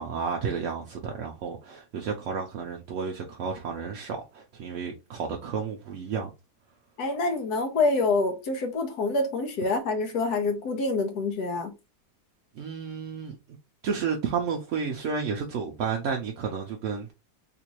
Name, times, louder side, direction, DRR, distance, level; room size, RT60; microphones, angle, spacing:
voice 1, 0.0-6.3 12.6-13.4 13.8-17.1, right 6 dB, 65° right, 0.8 m, -31 dB
voice 2, 7.0-11.7, left 3 dB, 75° left, 1.4 m, -26 dB
3.6 x 2.5 x 2.9 m
omnidirectional pair, 1.7 m